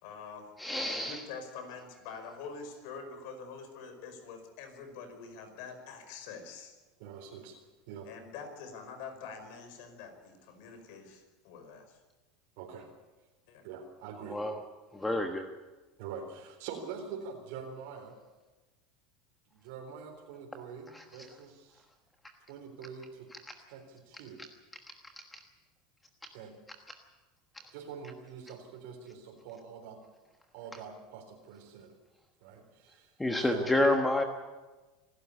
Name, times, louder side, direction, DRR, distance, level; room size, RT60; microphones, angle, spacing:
voice 1, 0.0-0.5 0.8-6.7 8.0-12.0 13.5-13.7, left 5 dB, 65° left, 7 dB, 5.1 m, -45 dB
voice 2, 0.6-1.2 14.3-14.6 14.9-15.5 20.9-21.0 25.3-25.4 33.2-34.2, left 1 dB, 5° left, 4 dB, 1.3 m, -29 dB
voice 3, 7.0-7.6 7.9-8.1 12.6-12.9 13.6-14.4 16.0-18.2 19.5-21.8 22.5-23.3 23.7-24.4 26.3-26.5 27.7-30.0 30.5-31.9 32.4-33.1 33.5-33.7, right 6 dB, 70° right, 1 dB, 3.9 m, -45 dB
26.5 x 12.5 x 8.4 m, 1.2 s
supercardioid pair, 140°, 0 cm